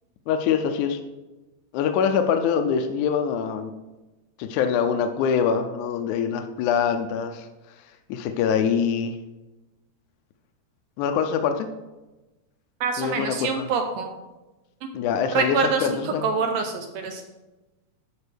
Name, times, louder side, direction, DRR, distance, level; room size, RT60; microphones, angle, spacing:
voice 1, 0.3-1.0 1.7-3.7 4.4-7.5 8.1-9.2 11.0-11.7 13.0-13.7 14.9-16.3, left 7 dB, 80° left, 7 dB, 2.0 m, -24 dB
voice 2, 12.8-14.1 15.3-17.2, right 5 dB, 75° right, 5 dB, 1.7 m, -25 dB
12.5 x 5.1 x 3.4 m, 1.1 s
omnidirectional pair, 3.5 m